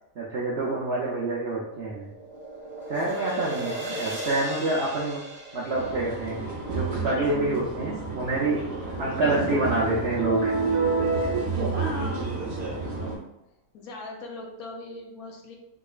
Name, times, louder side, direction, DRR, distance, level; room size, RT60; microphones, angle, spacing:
voice 1, 0.2-2.1 2.9-5.2 5.5-6.4 6.7-8.6 9.0-10.5 11.2-11.3, right 2 dB, 65° right, -5 dB, 0.6 m, -27 dB
sound 1, 1.4-7.7, right 1 dB, 10° right, 1.0 m, -37 dB
voice 2, 3.2-3.6 7.1-7.4 11.7-12.3 13.0-13.3 13.7-15.6, left 3 dB, 70° left, 1 dB, 1.1 m, -39 dB
sound 2, 5.7-13.1, right 3 dB, 50° right, 1.0 m, -29 dB
3.7 x 3.1 x 2.3 m, 0.89 s
omnidirectional pair, 1.7 m